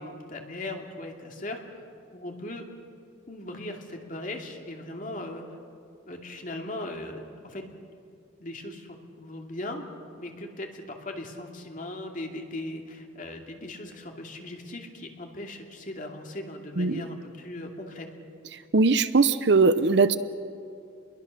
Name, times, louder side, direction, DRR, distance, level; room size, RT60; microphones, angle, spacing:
voice 1, 0.0-1.6 2.1-2.7 3.3-5.4 6.0-7.6 8.4-9.8 10.2-18.1, left 1 dB, 40° left, 2 dB, 2.7 m, -38 dB
voice 2, 18.7-20.2, right 4 dB, 55° right, 13 dB, 0.8 m, -20 dB
29.0 x 22.0 x 6.7 m, 2.5 s
head